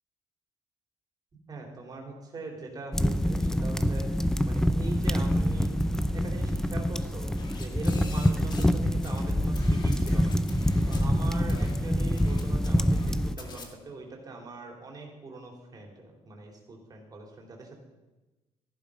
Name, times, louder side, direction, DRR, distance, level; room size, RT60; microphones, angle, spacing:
voice 1, 1.5-5.8 6.1-10.3 10.9-17.8, right 3 dB, 30° right, 1 dB, 3.7 m, -42 dB
sound 1, 2.9-13.3, equal, 5° left, 0.5 m, -26 dB
sound 2, 7.4-8.8 9.0-11.1 11.5-11.8 12.2-13.1 13.4-13.7, left 3 dB, 35° left, 2.1 m, -43 dB
15.0 x 11.0 x 5.1 m, 1.1 s
cardioid pair, 135°, 12 cm